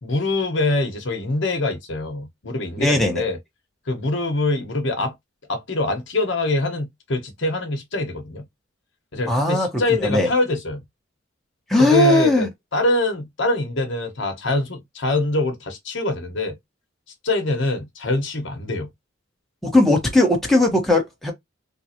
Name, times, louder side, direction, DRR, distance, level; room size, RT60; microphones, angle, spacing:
voice 1, 0.0-3.4 3.9-5.1 5.5-8.5 9.1-10.8 11.8-16.6 17.2-18.9, left 2 dB, 65° left, 1.1 m, -24 dB
voice 2, 2.8-3.2 9.3-9.7 10.0-10.3 11.7-12.5 19.6-21.3, left 1 dB, ahead, 1.2 m, -18 dB
3.8 x 2.5 x 2.8 m
head